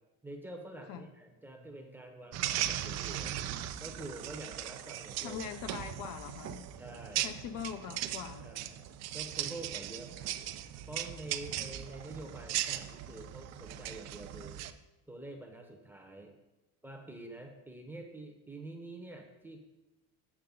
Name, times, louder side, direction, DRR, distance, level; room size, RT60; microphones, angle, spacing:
voice 1, 0.2-3.4 3.8-5.6 6.8-7.3 8.4-10.4 10.9-14.6 15.1-16.3 16.8-19.6, right 2 dB, 5° right, 2 dB, 0.8 m, -47 dB
sound 1, 2.3-14.7, right 12 dB, 45° right, 0.4 m, -38 dB
voice 2, 5.2-6.7 7.2-8.5, left 8 dB, 60° left, 8 dB, 0.6 m, -42 dB
7.2 x 6.6 x 3.9 m, 1.0 s
cardioid pair, 150°, 37 cm